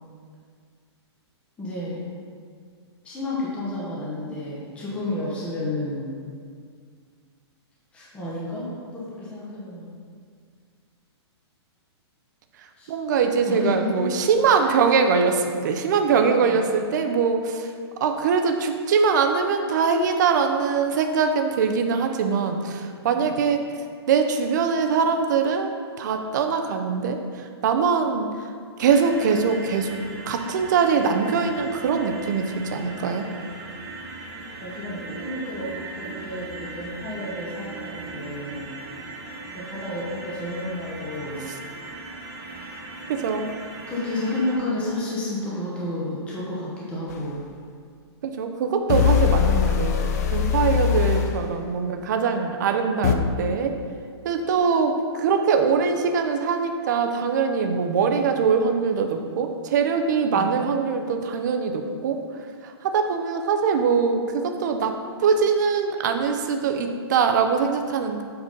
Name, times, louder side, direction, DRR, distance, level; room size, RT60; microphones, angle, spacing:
voice 1, 1.6-2.0 3.0-6.1 7.9-9.9 12.8-12.9 13.5-14.1 14.6-14.8 16.4-16.6 23.1-23.3 34.6-38.7 39.5-41.4 42.5-42.8 43.9-47.4 50.6-50.8 60.3-60.6, left 1 dB, 10° left, -7 dB, 0.9 m, -31 dB
voice 2, 12.9-17.7 18.0-23.6 24.1-25.7 26.0-28.3 28.8-33.3 41.4-41.6 43.1-43.5 48.2-53.8 54.2-62.2 62.6-68.2, right 5 dB, 40° right, 5 dB, 0.6 m, -22 dB
sound 1, 28.8-44.6, right 2 dB, 25° right, 1.0 m, -38 dB
sound 2, 47.1-47.2 48.9-51.4 53.0-53.1, left 9 dB, 35° left, 0.4 m, -21 dB
8.0 x 4.1 x 5.3 m, 2.1 s
hypercardioid pair, 170°, 14 cm